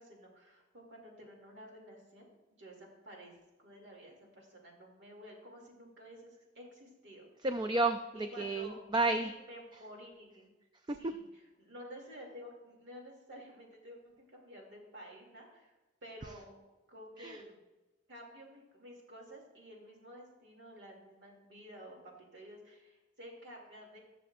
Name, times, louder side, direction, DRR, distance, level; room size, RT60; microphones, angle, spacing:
voice 1, 0.0-7.3 8.1-8.8 9.2-10.5 11.0-15.7 16.0-16.6 16.9-17.6 18.1-24.0, equal, 65° right, -1 dB, 2.6 m, -52 dB
voice 2, 7.4-9.3 11.0-11.1 17.2-17.4, right 2 dB, 25° right, 7 dB, 0.4 m, -31 dB
19.5 x 6.8 x 2.5 m, 1.1 s
head